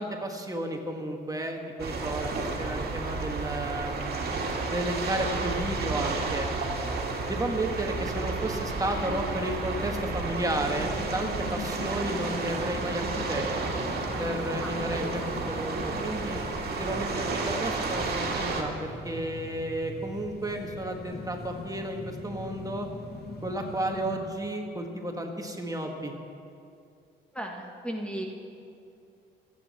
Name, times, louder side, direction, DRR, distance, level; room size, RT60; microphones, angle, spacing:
voice 1, 0.0-4.1 4.7-6.5 7.3-13.5 14.2-15.2 15.5-16.4 16.8-22.9 23.4-26.1, right 1 dB, 20° right, 2 dB, 1.6 m, -32 dB
sound 1, 1.8-18.6, right 3 dB, 55° right, 2.4 m, -32 dB
sound 2, 5.6-24.2, left 2 dB, 50° left, 2.8 m, -41 dB
voice 2, 14.6-15.2 27.3-28.3, right 1 dB, 5° left, 1 dB, 1.5 m, -36 dB
27.5 x 9.4 x 4.3 m, 2.5 s
cardioid pair, 90°, 20 cm